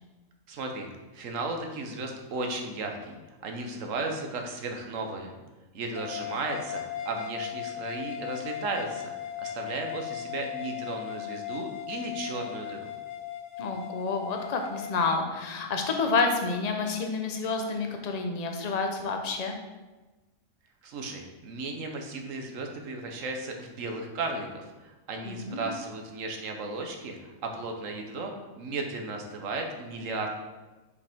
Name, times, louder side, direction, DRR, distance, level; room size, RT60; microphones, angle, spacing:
voice 1, 0.5-0.9 1.1-5.3 5.7-9.1 9.4-12.9 20.8-30.3, right 3 dB, 70° right, 3 dB, 1.2 m, -35 dB
sound 1, 5.9-15.0, left 11 dB, 70° left, 1.1 m, -37 dB
voice 2, 13.6-19.6 25.2-25.7, left 4 dB, 40° left, 3 dB, 0.7 m, -29 dB
6.7 x 5.0 x 3.5 m, 1.2 s
omnidirectional pair, 1.4 m